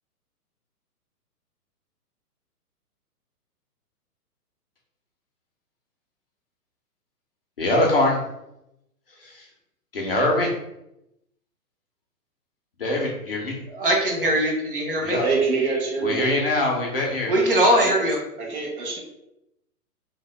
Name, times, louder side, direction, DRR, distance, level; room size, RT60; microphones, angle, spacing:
voice 1, 7.6-8.2 9.2-9.5 9.9-10.5 12.8-13.6 15.0-15.2 16.0-17.3, left 1 dB, 40° left, -1 dB, 0.5 m, -23 dB
voice 2, 13.7-15.2 17.2-18.2, right 1 dB, 35° right, -1 dB, 0.5 m, -21 dB
voice 3, 15.2-16.4 17.8-17.9 18.4-19.0, right 4 dB, 65° right, -3 dB, 1.1 m, -25 dB
2.7 x 2.1 x 3.1 m, 0.86 s
hypercardioid pair, 165°, 47 cm